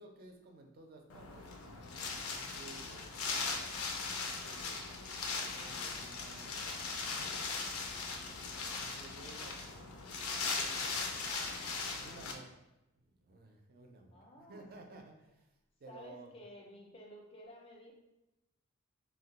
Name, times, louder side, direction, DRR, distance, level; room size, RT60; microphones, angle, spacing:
voice 1, 0.0-3.7 4.2-8.1 8.6-11.1 12.0-12.5 12.9-15.5 15.8-16.4, right 2 dB, 45° right, 3 dB, 0.4 m, -56 dB
Wind, 1.1-12.3, left 4 dB, 85° left, 0.4 m, -39 dB
voice 2, 14.1-15.0 15.9-17.9, equal, 25° left, 0 dB, 0.4 m, -53 dB
2.3 x 2.1 x 3.8 m, 0.95 s
head